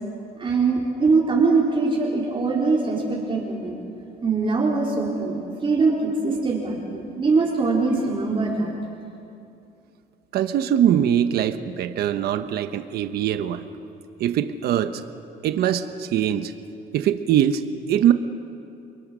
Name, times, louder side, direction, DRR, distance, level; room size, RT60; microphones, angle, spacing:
voice 1, 0.4-3.8 4.2-8.7, right 3 dB, 30° right, -4 dB, 4.0 m, -22 dB
voice 2, 10.3-13.6 14.2-15.0 15.4-16.5 16.9-18.1, right 10 dB, 70° right, 9 dB, 1.1 m, -22 dB
30.0 x 22.5 x 6.3 m, 2.7 s
cardioid pair, 110°, 17 cm